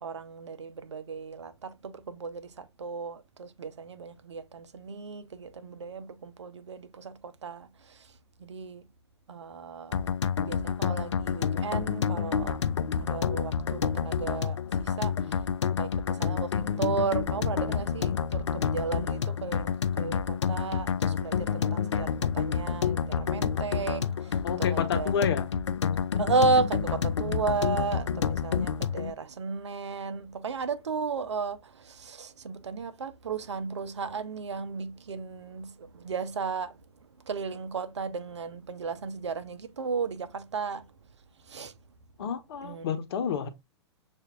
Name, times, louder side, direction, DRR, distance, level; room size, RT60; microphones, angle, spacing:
voice 1, 0.0-8.1 8.4-8.9 9.3-10.1 10.5-12.6 13.0-15.4 15.7-25.1 26.1-36.8 37.3-40.9 41.5-41.7 42.6-42.9, right 4 dB, 75° right, 0.6 m, -34 dB
sound 1, 9.9-29.1, left 7 dB, 80° left, 0.4 m, -29 dB
voice 2, 24.4-25.5 42.2-43.5, left 7 dB, 60° left, 0.9 m, -30 dB
6.9 x 2.5 x 2.4 m
figure-of-eight pair, 110°, 15 cm